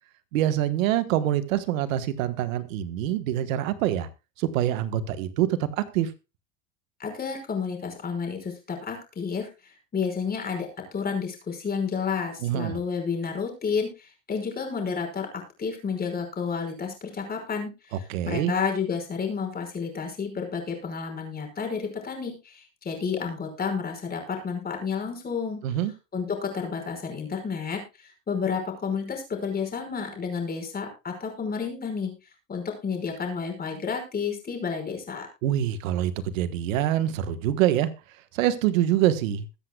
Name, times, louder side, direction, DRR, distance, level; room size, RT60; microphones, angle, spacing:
voice 1, 0.3-4.1 4.4-6.1 12.4-12.8 18.1-18.5 25.6-25.9 35.4-37.9 38.3-39.5, right 12 dB, 85° right, 12 dB, 1.4 m, -25 dB
voice 2, 7.0-25.6 26.1-32.1 32.5-35.3, left 5 dB, 25° left, 2 dB, 5.4 m, -31 dB
21.5 x 8.1 x 2.3 m, 0.27 s
supercardioid pair, 125°, 39 cm